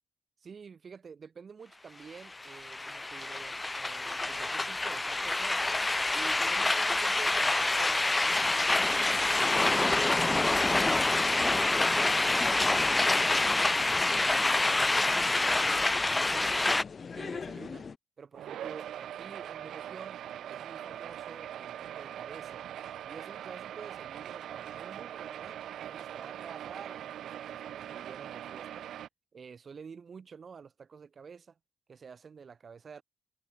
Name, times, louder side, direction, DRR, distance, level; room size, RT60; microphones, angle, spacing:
voice 1, 0.4-5.7 6.1-10.7 11.0-15.8 16.1-16.8 17.1-17.9 18.2-20.2 20.5-22.6 23.0-28.9 29.3-31.6 31.9-33.0, right 6 dB, 40° right, 7.5 m, -49 dB
sound 1, 2.3-16.8, left 2 dB, 15° left, 0.5 m, -27 dB
sound 2, 9.4-18.0, left 5 dB, 35° left, 2.0 m, -43 dB
sound 3, 18.3-29.1, right 11 dB, 75° right, 2.3 m, -42 dB
cardioid pair, 120°, 0 cm